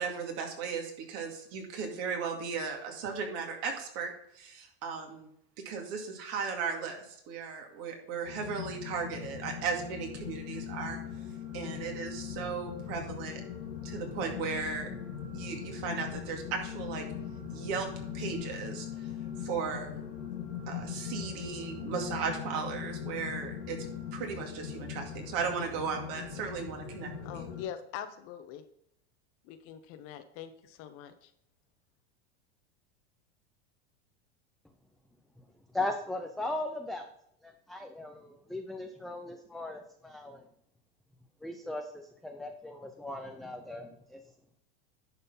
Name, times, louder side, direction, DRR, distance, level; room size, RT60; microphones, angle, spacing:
voice 1, 0.0-5.3 5.6-11.0 11.5-13.4 13.8-14.9 15.3-17.1 17.5-17.9 18.1-18.9 19.4-20.0 20.7-23.8 24.1-27.5, right 5 dB, 50° right, 2 dB, 2.3 m, -36 dB
sound 1, 8.2-27.6, left 8 dB, 75° left, 2.6 m, -40 dB
voice 2, 27.2-28.6 29.4-31.3, left 9 dB, 50° left, 9 dB, 1.0 m, -43 dB
voice 3, 35.7-37.1 37.4-40.4 41.4-44.2, left 2 dB, ahead, 4 dB, 0.4 m, -38 dB
10.5 x 4.3 x 5.6 m, 0.73 s
supercardioid pair, 140°, 31 cm